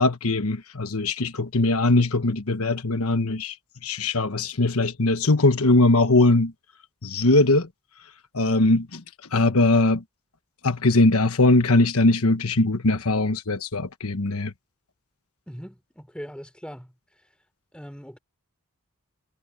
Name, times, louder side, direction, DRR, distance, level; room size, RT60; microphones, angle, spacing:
voice 1, 0.0-3.6 3.8-6.5 7.0-7.7 8.3-9.0 9.3-10.0 10.6-14.5, left 2 dB, 80° left, 1.2 m, -20 dB
voice 2, 15.5-17.3 17.7-18.2, equal, 5° left, 3.9 m, -41 dB
head